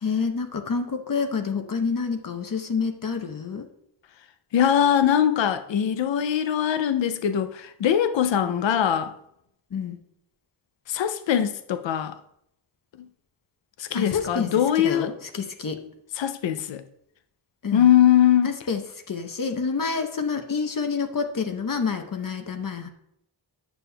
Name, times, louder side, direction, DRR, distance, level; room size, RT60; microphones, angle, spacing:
voice 1, 0.0-3.7 9.7-10.0 13.9-14.5 14.8-15.8 17.6-17.9 18.4-18.8 19.1-22.9, left 5 dB, 50° left, 0.8 m, -28 dB
voice 2, 4.5-9.1 10.9-12.1 13.8-15.1 16.1-16.8 17.7-18.5, left 9 dB, 85° left, 0.5 m, -21 dB
9.1 x 6.7 x 2.2 m
wide cardioid pair, 65°, 43 cm